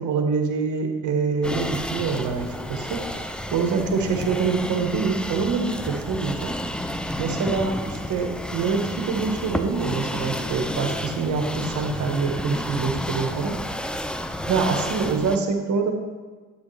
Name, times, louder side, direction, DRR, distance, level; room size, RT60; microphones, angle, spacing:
voice 1, 0.0-6.6 7.2-13.9 14.4-15.9, right 4 dB, 75° right, 4 dB, 1.4 m, -25 dB
sound 1, 1.4-15.4, equal, 5° left, 0.5 m, -31 dB
10.5 x 8.6 x 3.3 m, 1.4 s
cardioid pair, 90°, 30 cm